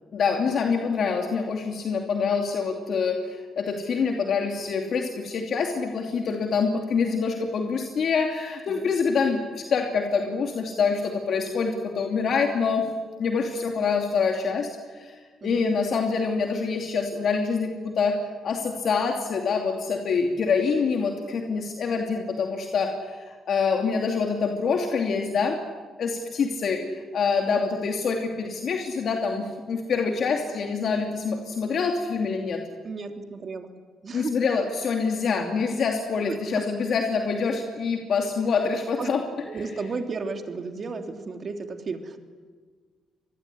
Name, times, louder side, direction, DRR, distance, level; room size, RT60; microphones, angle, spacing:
voice 1, 0.1-12.9 13.2-18.1 18.4-25.6 26.0-32.6 34.1-39.2, left 5 dB, 60° left, 2 dB, 2.7 m, -26 dB
voice 2, 32.8-33.7 34.0-34.3 36.5-36.6 39.0-39.1 39.5-42.2, right 4 dB, 45° right, 5 dB, 3.1 m, -34 dB
26.0 x 21.0 x 9.8 m, 1.5 s
cardioid pair, 90°, 0 cm